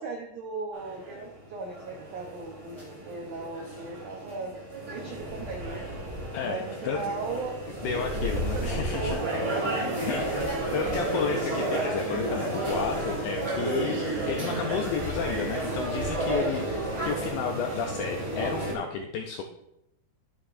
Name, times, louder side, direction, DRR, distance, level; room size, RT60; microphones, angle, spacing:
voice 1, 0.0-4.5 4.9-5.9 6.4-7.6 8.2-10.3 16.3-16.6, right 3 dB, 85° right, 1 dB, 1.7 m, -37 dB
sound 1, 0.7-18.7, right 1 dB, 20° right, 2.8 m, -32 dB
voice 2, 6.3-7.0 7.8-9.2 10.1-14.0 14.3-19.4, left 6 dB, 85° left, 3 dB, 2.0 m, -32 dB
11.5 x 8.7 x 2.6 m, 0.83 s
omnidirectional pair, 4.8 m